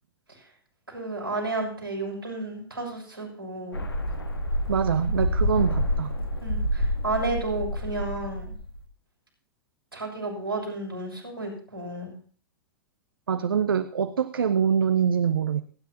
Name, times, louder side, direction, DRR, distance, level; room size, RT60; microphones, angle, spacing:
voice 1, 0.9-3.8 6.4-8.5 9.9-12.1, right 2 dB, 90° right, -2 dB, 6.4 m, -32 dB
sound 1, 3.7-8.8, equal, 80° left, 1.7 m, -28 dB
voice 2, 4.7-6.1 13.3-15.6, right 7 dB, 70° right, 11 dB, 0.7 m, -24 dB
28.5 x 10.5 x 2.9 m, 0.43 s
figure-of-eight pair, 100°, 12 cm